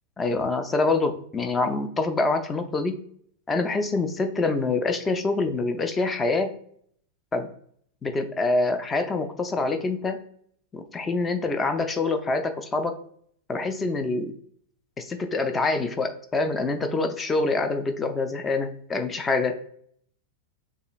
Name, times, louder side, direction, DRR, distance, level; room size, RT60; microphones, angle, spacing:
voice 1, 0.2-3.0 3.5-6.5 7.3-7.5 8.0-10.2 10.7-13.0 13.5-14.3 15.0-19.6, left 3 dB, 15° left, 8 dB, 0.5 m, -25 dB
6.6 x 2.4 x 2.5 m, 0.63 s
figure-of-eight pair, 90°, 0 cm